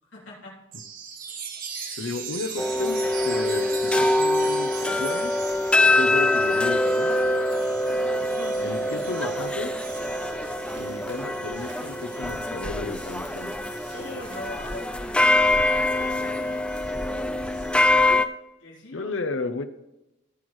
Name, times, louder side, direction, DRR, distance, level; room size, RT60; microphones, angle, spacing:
voice 1, 0.0-0.6 7.9-9.1 13.9-15.8 18.6-19.1, left 1 dB, 70° left, -4 dB, 3.4 m, -41 dB
Chime, 0.7-14.7 15.2-18.0, right 6 dB, 45° right, 1.4 m, -41 dB
voice 2, 2.0-5.3 5.7-7.1 8.6-9.7 10.8-13.5 18.9-19.6, left 3 dB, 90° left, 8 dB, 0.7 m, -33 dB
sound 1, 2.6-18.3, left 1 dB, 5° left, 0.3 m, -24 dB
sound 2, 8.8-16.5, right 1 dB, 65° right, 2.3 m, -47 dB
16.0 x 6.3 x 3.1 m, 0.96 s
head